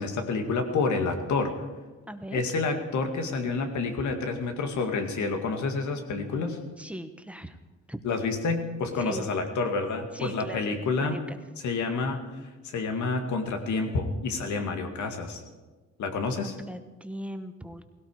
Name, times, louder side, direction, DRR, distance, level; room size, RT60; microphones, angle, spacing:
voice 1, 0.0-1.7 2.3-6.6 8.0-11.2 11.6-12.2 12.6-15.4 16.0-16.6, left 4 dB, 70° left, 5 dB, 2.2 m, -29 dB
voice 2, 2.1-2.4 6.8-7.6 7.9-8.0 9.0-9.3 10.1-10.6 11.0-11.4 16.4-17.8, equal, 5° right, 8 dB, 1.2 m, -39 dB
17.0 x 17.0 x 4.9 m, 1.3 s
cardioid pair, 90°, 30 cm